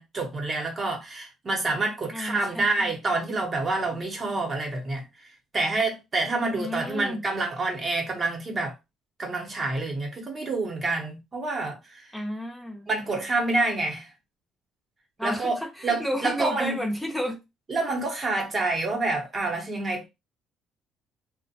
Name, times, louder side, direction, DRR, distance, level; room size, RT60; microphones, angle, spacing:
voice 1, 0.0-8.7 9.2-12.2 12.9-14.1 15.2-15.6 15.8-16.8 17.7-20.1, right 3 dB, 35° right, 0.9 m, -28 dB
voice 2, 2.1-2.9 6.6-7.2 12.1-12.9 15.2-17.4, equal, 5° left, 0.7 m, -31 dB
2.4 x 2.1 x 2.7 m
cardioid pair, 90°, 0 cm